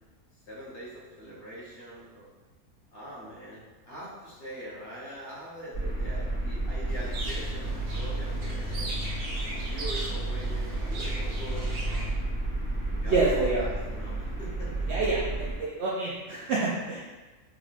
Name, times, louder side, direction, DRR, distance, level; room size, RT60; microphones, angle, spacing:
voice 1, 0.5-2.3 2.9-8.9 9.4-12.1 13.0-14.9, right 1 dB, 45° left, -7 dB, 1.2 m, -43 dB
sound 1, 5.7-15.6, right 2 dB, 20° left, 1.5 m, -32 dB
superb starling, 6.9-12.1, left 1 dB, 85° right, 1.2 m, -38 dB
voice 2, 13.0-13.6 14.9-17.0, right 3 dB, 65° right, -5 dB, 0.7 m, -27 dB
3.6 x 3.4 x 2.5 m, 1.2 s
omnidirectional pair, 1.5 m